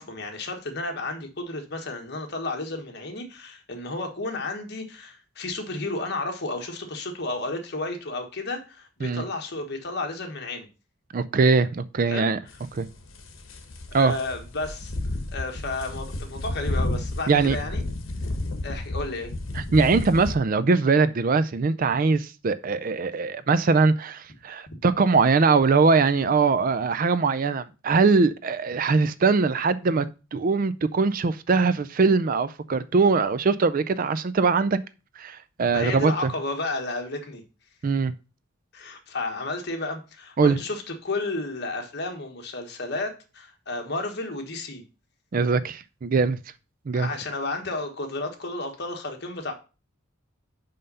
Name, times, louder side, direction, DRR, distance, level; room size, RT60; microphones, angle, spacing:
voice 1, 0.0-10.7 12.0-12.3 13.9-14.9 15.3-17.8 18.6-19.3 35.7-37.4 38.7-44.8 46.9-49.5, left 2 dB, 55° left, 1.5 m, -32 dB
voice 2, 11.1-12.4 12.7-12.9 13.9-14.1 17.3-17.6 19.5-30.1 30.3-34.8 35.2-36.3 37.8-38.1 40.4-40.6 45.3-46.4 46.9-47.1, right 4 dB, 45° right, 0.4 m, -22 dB
sound 1, 12.5-20.3, left 2 dB, 75° left, 1.2 m, -32 dB
5.6 x 5.3 x 5.4 m
head